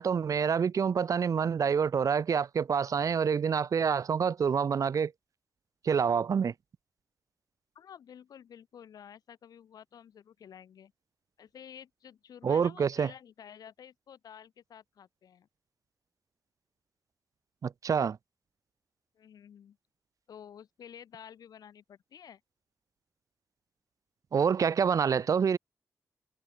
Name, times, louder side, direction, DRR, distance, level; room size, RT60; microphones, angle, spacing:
voice 1, 0.0-5.1 5.8-6.5 12.4-13.1 17.6-18.2 24.3-25.6, right 6 dB, 60° right, 0.6 m, -27 dB
voice 2, 7.7-10.9 11.4-15.5 19.1-19.8 20.3-22.4, left 8 dB, 80° left, 2.6 m, -51 dB
cardioid pair, 55°, 6 cm